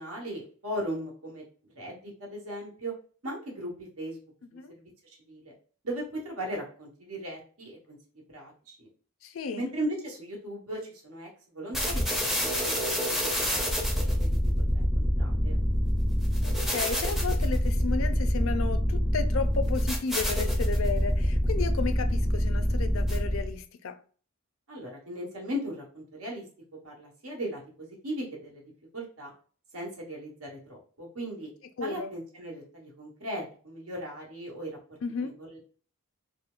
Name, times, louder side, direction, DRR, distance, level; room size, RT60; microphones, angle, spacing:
voice 1, 0.0-1.4 1.7-2.9 3.2-3.7 4.0-4.2 4.7-5.5 5.8-8.0 8.3-8.9 9.5-14.4 14.7-15.6 24.7-26.4 26.8-28.6 28.9-29.3 29.7-31.5 31.8-34.7 35.2-35.6, equal, 80° right, 1.3 m, -38 dB
voice 2, 9.2-9.7 16.4-24.0 31.8-32.1 35.0-35.4, left 4 dB, 65° left, 0.4 m, -33 dB
sound 1, 11.7-23.5, equal, ahead, 0.5 m, -26 dB
4.2 x 2.1 x 2.4 m
head